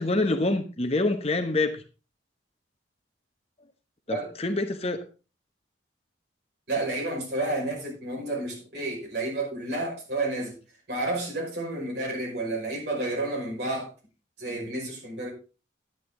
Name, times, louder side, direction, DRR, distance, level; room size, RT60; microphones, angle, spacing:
voice 1, 0.0-1.8 4.1-5.0, left 2 dB, 30° left, 7 dB, 0.9 m, -26 dB
voice 2, 6.7-10.6 10.9-13.9 14.4-15.3, right 2 dB, 60° right, -1 dB, 5.4 m, -30 dB
10.5 x 9.1 x 3.7 m, 0.33 s
head